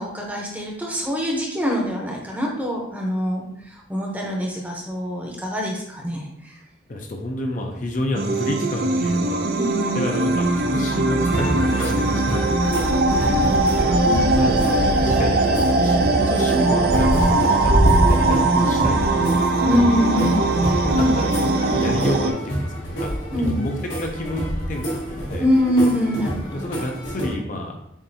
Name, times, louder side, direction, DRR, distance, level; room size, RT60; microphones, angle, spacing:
voice 1, 0.0-6.5 9.5-10.0 12.6-12.8 13.2-14.3 19.6-20.4 23.3-23.7 25.4-26.6, equal, 10° right, -1 dB, 0.8 m, -24 dB
voice 2, 6.9-9.5 9.9-12.5 13.8-14.0 14.3-19.8 20.8-23.1 23.4-25.5 26.5-27.8, left 1 dB, 45° left, 2 dB, 0.5 m, -29 dB
sound 1, 8.2-22.3, right 2 dB, 55° right, 0.4 m, -20 dB
sound 2, 11.2-27.4, equal, 90° left, 1.7 m, -26 dB
7.1 x 2.6 x 2.7 m, 0.77 s
head